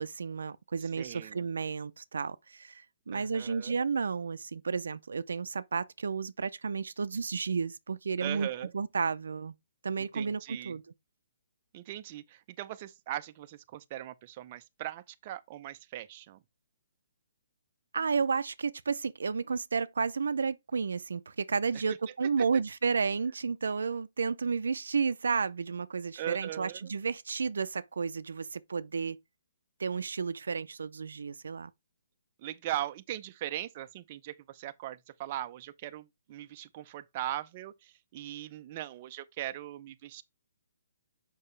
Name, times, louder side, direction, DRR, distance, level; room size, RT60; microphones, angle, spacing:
voice 1, 0.0-8.5 8.7-9.5 9.8-10.8 17.9-29.2 29.8-31.7, right 5 dB, 85° right, 0.5 m, -32 dB
voice 2, 0.8-1.4 3.1-3.8 8.2-8.7 10.1-10.8 11.7-16.4 22.4-22.6 26.2-26.9 32.4-40.2, right 13 dB, 35° right, 0.6 m, -39 dB
6.7 x 5.5 x 3.3 m
hypercardioid pair, 155°, 0 cm